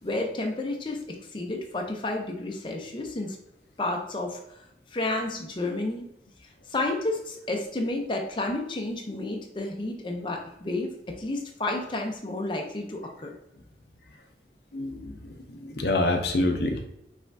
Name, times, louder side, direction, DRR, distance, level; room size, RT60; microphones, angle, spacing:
voice 1, 0.0-3.4 3.8-4.6 4.9-6.1 6.7-13.3, left 2 dB, 25° left, 1 dB, 0.6 m, -31 dB
voice 2, 14.7-16.8, left 2 dB, 65° left, 5 dB, 0.6 m, -27 dB
5.3 x 3.5 x 2.6 m, 0.81 s
head